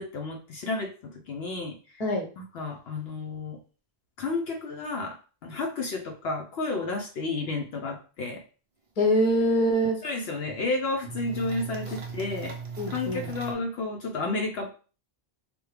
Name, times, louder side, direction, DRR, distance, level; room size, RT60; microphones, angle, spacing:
voice 1, 0.0-1.8 2.4-3.6 4.2-5.2 5.4-8.4 10.0-12.6 12.9-14.7, left 3 dB, 75° left, 2 dB, 0.8 m, -31 dB
voice 2, 9.0-10.0 12.8-13.3, equal, 40° left, 1 dB, 0.8 m, -24 dB
sound 1, 9.1-9.2 9.5-9.6 10.1-10.7 11.0-13.5, right 5 dB, 45° right, 0.5 m, -38 dB
3.4 x 2.2 x 3.2 m, 0.37 s
omnidirectional pair, 1.1 m